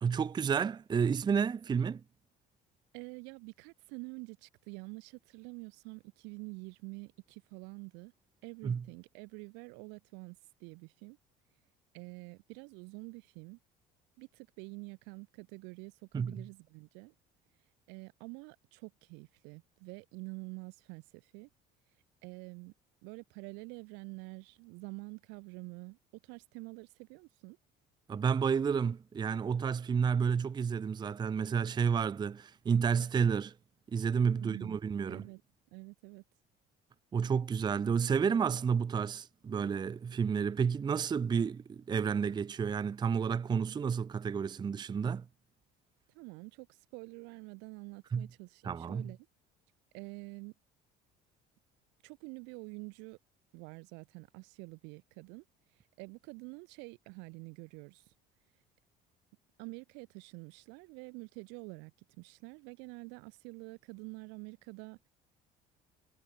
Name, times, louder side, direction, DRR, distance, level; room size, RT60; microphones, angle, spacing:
voice 1, 0.0-2.0 8.6-8.8 16.1-16.4 28.1-33.5 33.9-35.2 37.1-45.3 48.1-48.3 48.6-49.1, right 6 dB, 25° right, 0.5 m, -31 dB
voice 2, 2.9-8.1 8.4-11.2 11.9-13.6 14.2-17.1 17.9-21.5 22.2-22.7 23.0-26.0 26.2-27.6 34.4-34.8 35.1-35.4 35.7-36.2 46.1-49.2 49.9-50.5 52.0-53.2 53.5-55.4 56.0-58.0 59.6-65.0, right 31 dB, 85° right, 1.9 m, -47 dB
supercardioid pair, 95°, 18 cm